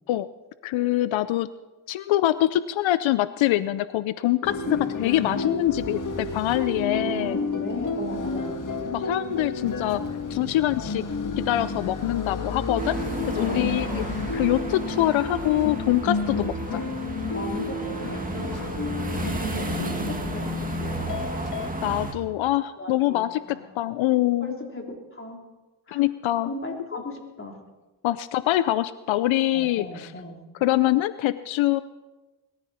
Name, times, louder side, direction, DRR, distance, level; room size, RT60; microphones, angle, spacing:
voice 1, 0.6-1.5 1.9-7.4 8.9-10.0 10.3-11.0 11.4-12.9 13.3-14.0 14.3-16.9 19.2-19.4 21.8-24.5 25.9-26.5 28.0-30.1 30.6-31.8, left 14 dB, 85° left, 14 dB, 0.6 m, -24 dB
sound 1, 4.4-21.7, left 3 dB, 45° left, 1.6 m, -31 dB
voice 2, 6.9-8.6 13.4-14.3 17.3-18.4 19.2-21.3 22.8-23.6 24.4-25.4 25.9-26.0 26.4-27.6 29.5-30.4, left 2 dB, 25° left, 1 dB, 3.6 m, -37 dB
sound 2, 12.8-22.1, right 2 dB, 20° right, 2.2 m, -33 dB
21.5 x 14.0 x 4.3 m, 1.1 s
cardioid pair, 80°, 45 cm